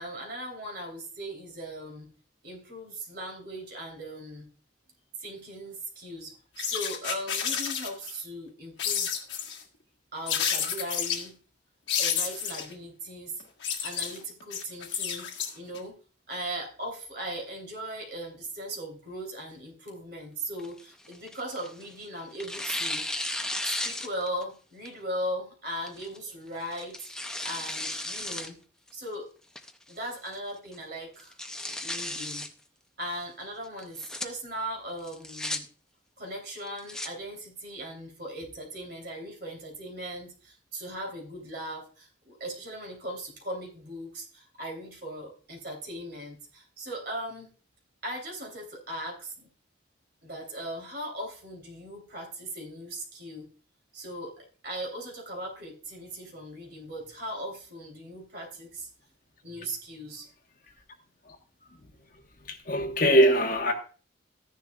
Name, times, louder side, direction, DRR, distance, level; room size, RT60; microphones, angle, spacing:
voice 1, 0.0-2.1 2.4-4.5 5.2-9.2 10.1-11.3 12.0-13.3 13.8-15.3 15.5-15.9 16.3-23.0 23.6-28.5 28.9-29.3 29.9-31.3 31.8-32.5 33.0-35.7 36.2-47.5 48.0-49.5 50.2-53.5 53.9-58.9 59.4-60.3, right 1 dB, 50° right, 3.2 m, -38 dB
sound 1, 6.6-8.1 8.8-9.6 10.3-11.2 11.9-12.7 13.4-15.8, left 7 dB, 60° left, 1.6 m, -30 dB
Tearing, 20.6-21.9 22.4-24.4 24.9-25.0 25.9-26.2 26.7-28.5 28.9-29.0 29.6-30.0 30.3-30.4 30.7-30.8 31.2-32.5 33.8-34.3 35.0-35.6 36.6-37.1, left 1 dB, 5° left, 0.5 m, -34 dB
voice 2, 62.5-63.7, equal, 45° left, 1.2 m, -22 dB
13.5 x 10.5 x 2.3 m
head